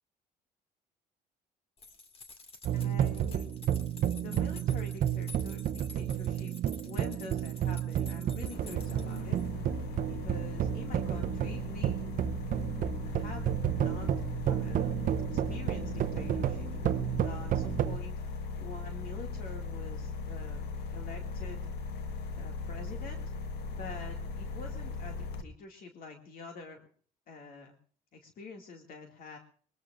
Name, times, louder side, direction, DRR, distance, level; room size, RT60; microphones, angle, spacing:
sound 1, 1.8-9.5, left 3 dB, 35° left, 2.2 m, -51 dB
sound 2, 2.6-18.0, right 10 dB, 55° right, 0.7 m, -31 dB
voice 1, 2.7-3.5 4.1-6.5 6.8-9.4 10.1-12.0 12.8-13.5 13.7-14.1 14.4-15.0 15.3-21.6 22.3-23.2 23.7-26.9 27.3-27.8 28.1-29.4, left 4 dB, 60° left, 3 dB, 2.3 m, -47 dB
sound 3, 8.5-25.4, left 4 dB, 75° left, 1.5 m, -39 dB
22.5 x 21.5 x 2.6 m, 0.43 s
cardioid pair, 110°, 17 cm